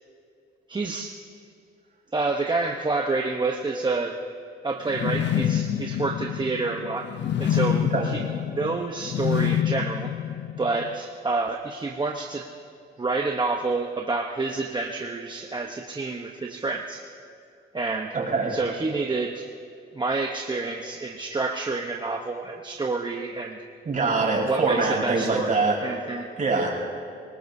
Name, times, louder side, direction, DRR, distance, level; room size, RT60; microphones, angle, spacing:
voice 1, 0.7-1.1 2.1-4.2 4.6-7.1 7.4-10.1 10.6-12.5 13.0-17.0 17.7-18.1 18.5-19.5 19.9-23.6 24.2-26.3, right 3 dB, 25° right, 2 dB, 0.9 m, -28 dB
sound 1, 4.9-10.9, left 10 dB, 65° left, 0.7 m, -27 dB
voice 2, 18.1-18.6 23.8-25.8 26.4-26.8, right 3 dB, 45° right, -3 dB, 4.9 m, -23 dB
25.5 x 19.0 x 2.7 m, 2.5 s
cardioid pair, 90°, 20 cm